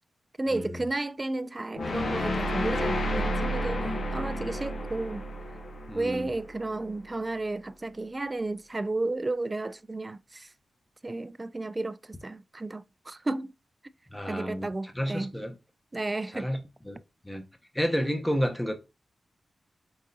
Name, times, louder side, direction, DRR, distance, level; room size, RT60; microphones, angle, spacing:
voice 1, 0.4-5.3 5.9-10.5 11.0-13.5 14.3-15.3 15.9-16.5, right 2 dB, 30° right, 0.3 m, -33 dB
sound 1, 1.7-6.8, equal, 65° left, 1.0 m, -31 dB
voice 2, 5.9-6.3 14.1-14.7 14.9-15.5 16.3-16.6 16.8-17.0 17.2-17.5 17.7-18.7, equal, 5° left, 0.9 m, -30 dB
4.8 x 3.6 x 2.7 m
cardioid pair, 60°, 0 cm